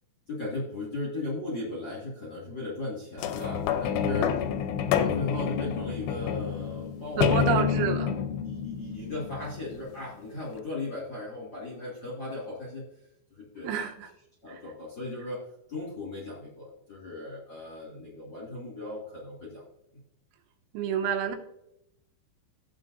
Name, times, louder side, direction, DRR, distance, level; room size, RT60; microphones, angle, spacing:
voice 1, 0.3-4.3 5.0-7.5 8.4-12.9 13.3-13.7 14.4-15.4 15.7-19.7, left 2 dB, 40° left, -6 dB, 1.8 m, -37 dB
sound 1, 3.2-10.0 10.6-10.7, left 8 dB, 80° left, 2.7 m, -28 dB
voice 2, 7.2-8.2 13.6-14.1 14.5-14.6 20.7-21.4, right 8 dB, 90° right, 4 dB, 3.5 m, -28 dB
15.0 x 8.5 x 2.6 m, 0.84 s
omnidirectional pair, 5.4 m